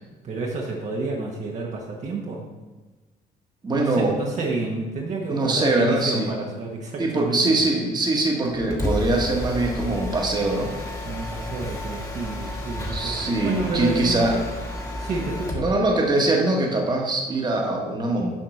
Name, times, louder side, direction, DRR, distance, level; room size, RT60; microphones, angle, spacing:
voice 1, 0.2-2.5 3.7-7.6 11.0-13.1 13.4-14.4 15.0-15.7, right 3 dB, 45° right, -2 dB, 1.3 m, -30 dB
voice 2, 3.6-4.1 5.3-6.3 7.0-10.7 12.9-14.3 15.6-18.3, right 2 dB, 25° right, 0 dB, 1.5 m, -22 dB
Mechanisms, 8.5-15.7, left 1 dB, 20° left, 1.7 m, -31 dB
7.4 x 4.3 x 6.4 m, 1.2 s
cardioid pair, 110°, 17 cm